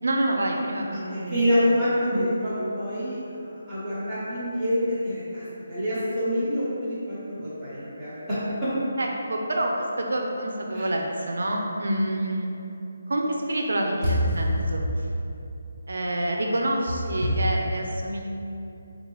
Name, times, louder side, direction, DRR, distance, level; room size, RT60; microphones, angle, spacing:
voice 1, 0.0-1.5 9.0-12.5 13.1-14.8 15.9-18.2, right 1 dB, 80° right, 1 dB, 0.5 m, -27 dB
voice 2, 0.9-5.4 5.7-8.7 10.7-10.9 14.0-14.5 17.2-17.3, equal, 5° right, -17 dB, 1.2 m, -26 dB
3.7 x 3.7 x 3.1 m, 2.8 s
hypercardioid pair, 175°, 0 cm